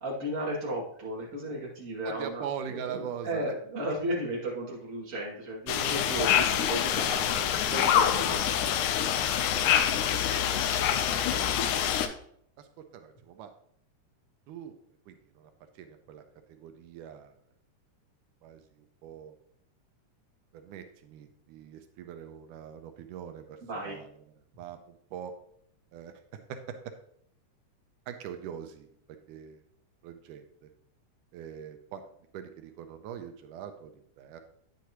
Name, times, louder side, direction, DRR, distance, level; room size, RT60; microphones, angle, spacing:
voice 1, 0.0-2.4 2.7-8.7 9.4-9.8 23.6-24.0, right 1 dB, 25° right, -5 dB, 2.5 m, -35 dB
voice 2, 2.1-3.5 6.2-6.5 10.0-11.6 12.6-13.5 14.5-14.8 15.1-15.5 15.8-16.2 16.5-17.3 18.4-19.3 20.5-23.6 23.8-24.2 24.6-25.3 25.9-26.1 26.5-26.8 28.1-28.9 29.3-29.6 30.0-30.7 31.3-32.0 32.3-34.4, right 8 dB, 90° right, 6 dB, 2.3 m, -42 dB
sound 1, 5.7-12.1, left 9 dB, 85° left, 2.2 m, -26 dB
9.4 x 8.1 x 3.0 m, 0.66 s
omnidirectional pair, 3.6 m